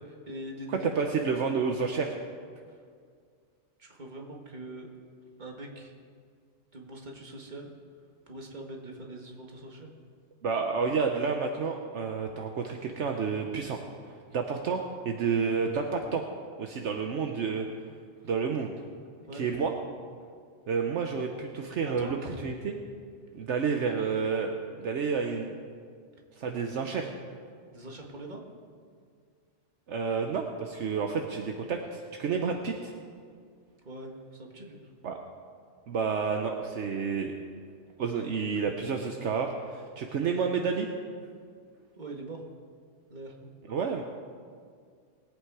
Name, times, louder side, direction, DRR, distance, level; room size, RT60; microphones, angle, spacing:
voice 1, 0.0-1.0 2.7-2.8 3.8-4.9 5.4-5.9 6.7-7.7 8.3-9.9 19.3-19.4 21.8-22.4 27.7-28.4 33.8-34.9 42.0-42.4 43.1-43.4, right 1 dB, 40° right, 1 dB, 1.7 m, -42 dB
voice 2, 0.7-2.2 10.4-13.8 14.1-16.2 16.6-17.7 18.2-18.7 19.3-19.7 20.7-22.2 22.4-22.7 23.3-24.5 24.8-25.5 26.4-27.1 29.9-32.9 35.0-35.2 35.9-37.3 38.0-40.9 43.7-44.0, right 5 dB, 70° right, 3 dB, 1.1 m, -30 dB
20.5 x 8.5 x 4.8 m, 2.1 s
omnidirectional pair, 1.3 m